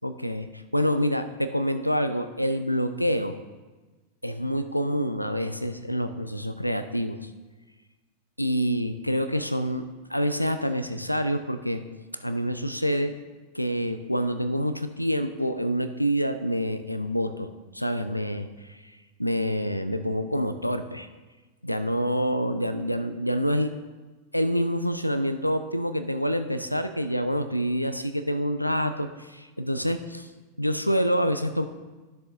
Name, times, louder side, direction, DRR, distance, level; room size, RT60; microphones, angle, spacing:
voice 1, 0.0-0.5 0.7-3.4 4.2-7.3 8.4-9.8 10.1-11.8 12.1-13.2 13.5-17.5 17.7-18.9 19.2-21.1 21.6-23.7 24.3-30.3 30.6-31.6, equal, 90° left, 10 dB, 0.3 m, -27 dB
12.0 x 6.7 x 2.6 m, 1.2 s
figure-of-eight pair, 90°, 0 cm